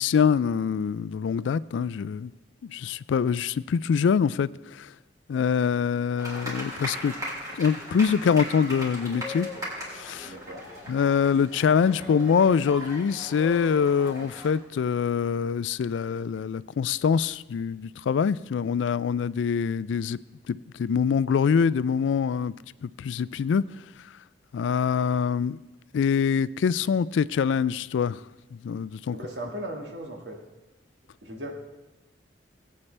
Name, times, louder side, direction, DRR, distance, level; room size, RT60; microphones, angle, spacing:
voice 1, 0.0-2.3 2.7-4.9 5.3-7.1 7.5-9.5 9.9-10.3 10.9-20.2 20.5-22.5 22.8-23.6 24.5-25.6 25.9-28.2 28.5-29.2, left 6 dB, 85° left, 0.3 m, -24 dB
sound 1, 6.2-14.5, left 1 dB, 20° right, 3.7 m, -38 dB
voice 2, 10.3-10.6 29.1-30.4 31.2-31.7, right 1 dB, 65° right, 1.8 m, -37 dB
19.5 x 8.6 x 3.3 m
head